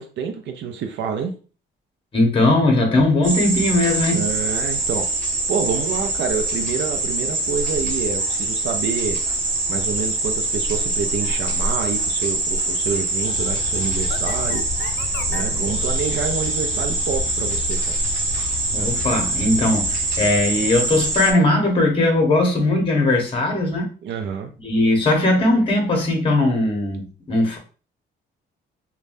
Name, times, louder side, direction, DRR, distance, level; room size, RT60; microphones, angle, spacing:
voice 1, 0.0-1.3 4.1-5.1 5.5-9.2 9.7-15.0 15.3-17.8 18.3-18.5 24.0-24.5, right 6 dB, 65° right, 5 dB, 0.5 m, -27 dB
voice 2, 2.1-4.2 18.7-23.9 24.6-27.6, left 2 dB, 25° left, 1 dB, 0.9 m, -19 dB
sound 1, 3.2-21.3, right 2 dB, 45° right, 1.1 m, -24 dB
sound 2, 13.2-21.8, left 7 dB, 75° left, 0.4 m, -34 dB
3.2 x 2.2 x 2.6 m, 0.37 s
cardioid pair, 90°, 20 cm